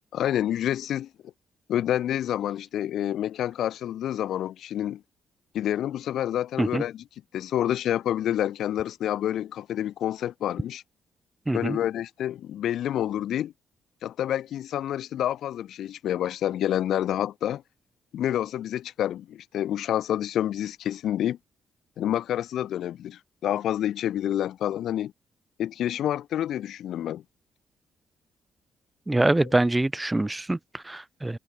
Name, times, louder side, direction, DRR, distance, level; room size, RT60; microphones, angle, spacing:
voice 1, 0.1-1.1 1.7-5.0 5.5-7.0 7.3-10.8 11.5-13.5 14.0-17.6 18.1-21.4 22.0-25.1 25.6-27.2, left 11 dB, 75° left, 0.9 m, -28 dB
voice 2, 11.5-11.8 29.1-31.4, right 2 dB, 15° right, 0.5 m, -25 dB
cardioid pair, 90°, 0 cm